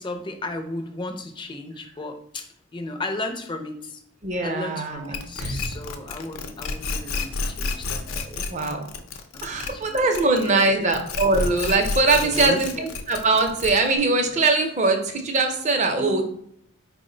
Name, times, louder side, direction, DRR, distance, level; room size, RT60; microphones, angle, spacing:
voice 1, 0.0-4.0 4.4-8.2 9.3-10.0 10.4-10.8 12.2-12.9 16.0-16.2, left 2 dB, 20° left, 6 dB, 0.4 m, -34 dB
voice 2, 4.2-5.6 8.3-8.8 9.4-16.2, right 3 dB, 35° right, 4 dB, 0.5 m, -22 dB
sound 1, 5.1-10.6 10.9-14.0, left 4 dB, 80° left, 0.5 m, -30 dB
4.4 x 2.1 x 3.7 m, 0.69 s
head